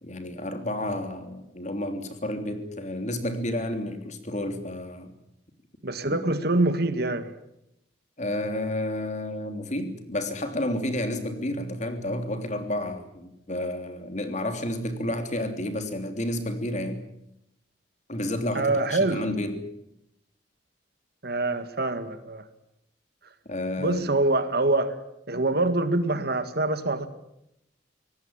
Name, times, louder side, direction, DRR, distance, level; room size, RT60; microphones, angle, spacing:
voice 1, 0.0-5.1 6.1-6.2 8.2-17.0 18.1-19.7 23.5-24.2, left 1 dB, 40° left, 7 dB, 3.2 m, -31 dB
voice 2, 5.8-7.3 18.5-19.2 21.2-22.4 23.8-25.0 25.3-27.1, right 2 dB, 55° right, 11 dB, 1.9 m, -25 dB
25.0 x 18.5 x 8.9 m, 0.81 s
head